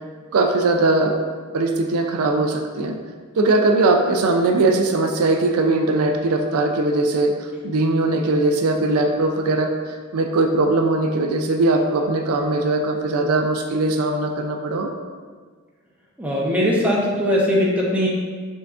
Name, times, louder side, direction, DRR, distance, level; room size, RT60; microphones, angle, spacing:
voice 1, 0.3-1.1 1.5-3.0 3.4-7.3 7.6-14.9, right 2 dB, 80° right, 4 dB, 0.4 m, -20 dB
voice 2, 16.2-18.1, equal, 5° right, -5 dB, 0.8 m, -20 dB
5.7 x 3.8 x 2.4 m, 1.5 s
head